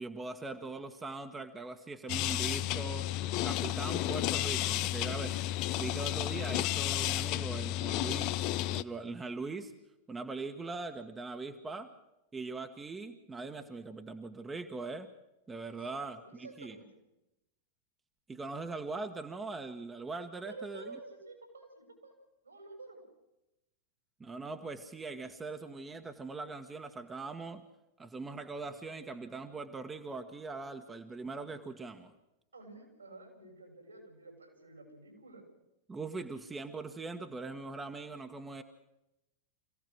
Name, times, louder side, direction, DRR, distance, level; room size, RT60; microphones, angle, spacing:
voice 1, 0.0-3.1 3.4-5.4 5.7-9.7 10.1-11.9 12.3-15.1 15.5-16.8 18.3-21.0 24.2-27.6 28.0-32.1 35.9-38.6, right 3 dB, 15° right, 6 dB, 1.3 m, -41 dB
sound 1, 2.1-8.8, left 14 dB, 40° left, 0.6 m, -32 dB
voice 2, 15.9-16.9 20.4-22.1 22.4-23.0 32.5-35.4, right 3 dB, 80° right, 3 dB, 6.4 m, -50 dB
26.0 x 16.5 x 6.2 m, 0.92 s
figure-of-eight pair, 90°, 0 cm